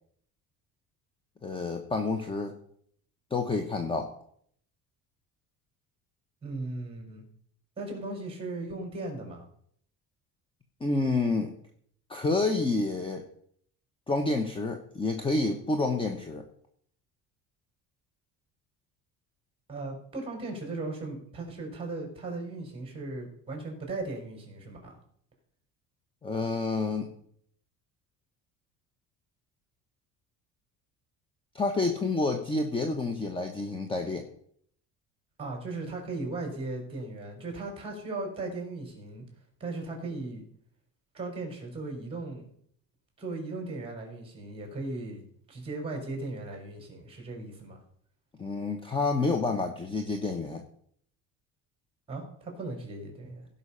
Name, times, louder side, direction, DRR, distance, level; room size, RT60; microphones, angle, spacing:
voice 1, 1.4-2.5 3.3-4.1 10.8-11.5 12.1-13.2 14.1-16.4 26.2-27.1 31.5-34.3 48.4-50.6, left 3 dB, 15° left, 5 dB, 1.0 m, -29 dB
voice 2, 6.4-7.2 7.8-9.4 19.7-24.9 35.4-39.3 39.6-40.4 41.1-42.5 43.2-47.8 52.1-53.5, right 2 dB, 15° right, 2 dB, 4.5 m, -37 dB
16.5 x 5.7 x 5.6 m, 0.64 s
cardioid pair, 140°, 35 cm